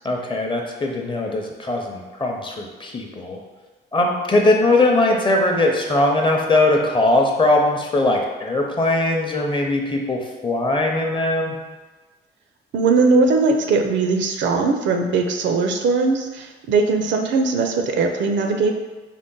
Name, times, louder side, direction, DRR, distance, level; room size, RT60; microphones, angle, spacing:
voice 1, 0.0-3.4 3.9-11.6, left 2 dB, 25° left, 1 dB, 0.6 m, -20 dB
voice 2, 12.7-18.7, right 4 dB, 70° right, 4 dB, 0.5 m, -19 dB
3.7 x 2.1 x 3.8 m, 1.3 s
cardioid pair, 90°, 20 cm